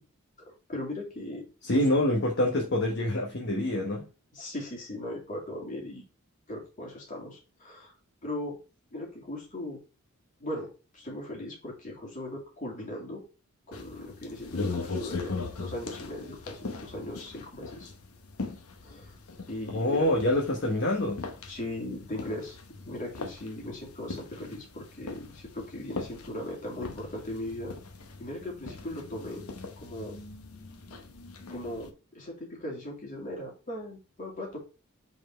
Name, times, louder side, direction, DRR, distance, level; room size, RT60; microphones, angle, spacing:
voice 1, 0.4-1.8 4.3-6.0 6.5-7.9 8.2-8.6 8.9-9.8 10.4-13.2 13.7-17.9 18.8-19.1 19.5-20.0 21.5-22.6 22.8-27.8 28.2-29.5 29.8-30.2 31.5-34.6, left 1 dB, 35° left, 2.6 m, -38 dB
voice 2, 1.6-4.0 19.7-21.2, left 1 dB, 55° left, 1.1 m, -26 dB
sound 1, 13.7-31.9, left 3 dB, 75° left, 0.9 m, -40 dB
5.3 x 4.3 x 4.3 m
head